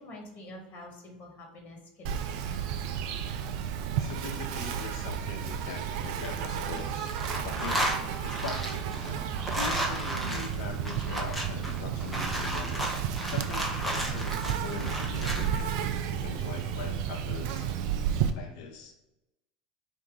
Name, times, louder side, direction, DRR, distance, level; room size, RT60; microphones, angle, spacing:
voice 1, 0.0-2.3, left 1 dB, 40° left, 1 dB, 1.5 m, -46 dB
Insect, 2.1-18.3, right 8 dB, 65° right, 0.4 m, -32 dB
voice 2, 3.9-7.2 7.4-9.2 9.5-12.9 13.3-15.7 16.0-17.7 18.3-18.9, left 5 dB, 70° left, 2 dB, 0.7 m, -41 dB
sound 1, 6.2-6.8 7.1-15.5, right 1 dB, ahead, 1.1 m, -34 dB
4.5 x 2.9 x 3.8 m, 0.93 s
hypercardioid pair, 95°, 4 cm